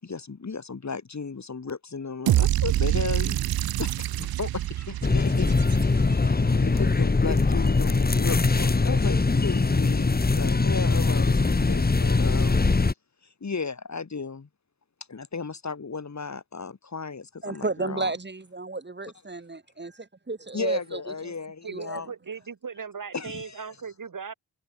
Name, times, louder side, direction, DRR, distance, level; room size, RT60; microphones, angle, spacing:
voice 1, 0.0-5.6 6.1-12.6 13.2-14.5 15.1-18.1 20.5-22.1 23.1-23.7, left 4 dB, 50° left, 5.0 m, -35 dB
sound 1, 2.3-6.4, right 13 dB, 85° right, 0.6 m, -26 dB
sound 2, 5.0-12.9, left 3 dB, 25° left, 1.5 m, -22 dB
voice 2, 17.4-21.3 21.7-22.0, right 3 dB, 30° right, 3.5 m, -32 dB
voice 3, 21.6-24.3, right 6 dB, 60° right, 6.0 m, -38 dB
cardioid pair, 50°, 36 cm